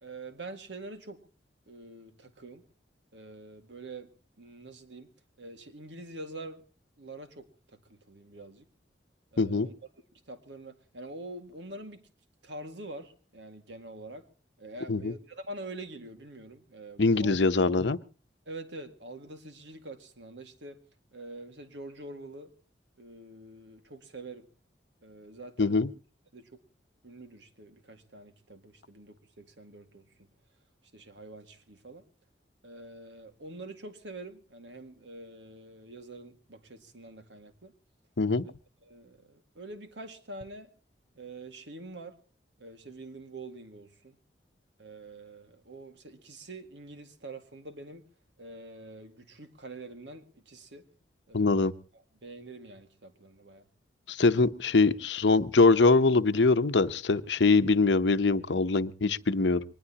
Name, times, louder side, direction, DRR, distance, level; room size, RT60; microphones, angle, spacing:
voice 1, 0.0-1.2 1.7-2.6 3.1-4.1 4.4-5.1 5.4-6.6 7.0-7.5 7.9-8.6 9.3-9.7 10.3-12.1 12.4-14.3 14.6-17.4 18.5-20.8 21.1-22.5 23.0-24.5 25.0-25.8 26.3-26.6 27.0-30.1 30.9-32.0 32.6-37.7 38.4-38.5 38.8-40.7 41.2-42.2 42.6-44.2 44.8-48.1 48.4-50.8 51.3-53.6, right 2 dB, 85° right, 2.1 m, -45 dB
voice 2, 9.4-9.7 14.9-15.1 17.0-18.0 25.6-25.9 38.2-38.4 51.3-51.7 54.1-59.6, left 3 dB, 85° left, 0.8 m, -23 dB
23.5 x 20.0 x 2.9 m
head